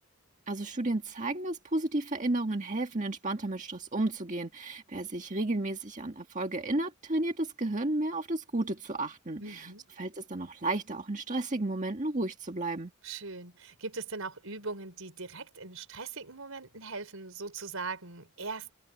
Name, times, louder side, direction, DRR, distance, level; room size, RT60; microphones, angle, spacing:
voice 1, 0.5-9.7 10.0-12.9, right 2 dB, 35° right, 1.7 m, -32 dB
voice 2, 9.4-9.9 13.0-18.7, right 4 dB, 75° right, 4.9 m, -40 dB
head